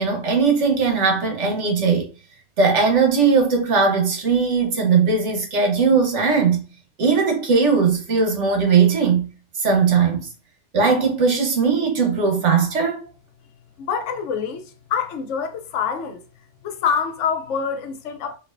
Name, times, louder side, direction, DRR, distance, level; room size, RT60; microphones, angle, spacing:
voice 1, 0.0-2.1 2.6-6.6 7.0-9.3 9.6-10.3 10.7-13.1, right 5 dB, 70° right, 1.3 m, -19 dB
voice 2, 13.8-16.2 16.6-18.3, left 6 dB, 80° left, 1.0 m, -26 dB
4.5 x 2.5 x 2.5 m
omnidirectional pair, 1.3 m